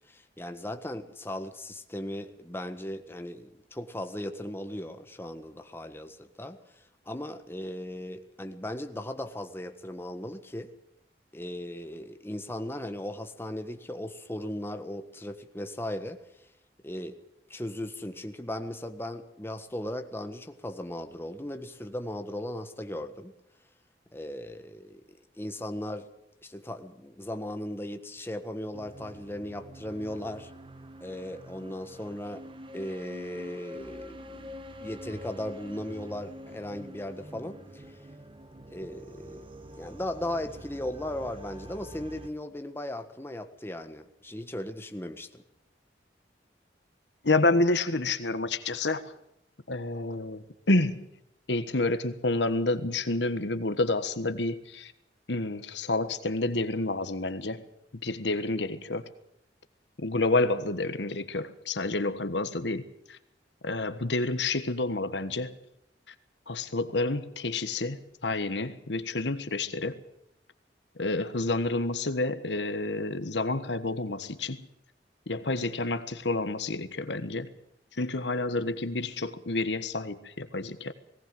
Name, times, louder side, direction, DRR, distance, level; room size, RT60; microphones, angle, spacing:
voice 1, 0.1-10.7 11.3-16.4 16.8-17.2 17.5-23.3 24.1-26.1 26.4-30.5 31.0-32.5 32.7-37.8 38.7-39.5 39.7-45.4, left 1 dB, 15° left, 1.5 m, -37 dB
sound 1, 28.7-42.3, equal, 30° right, 1.6 m, -46 dB
voice 2, 47.2-49.1 49.7-51.1 51.5-54.9 55.3-57.6 57.9-59.1 60.0-63.2 63.6-65.6 66.5-70.0 71.0-74.7 75.3-77.5 77.9-80.9, left 2 dB, 80° left, 1.4 m, -29 dB
20.0 x 18.0 x 7.7 m
head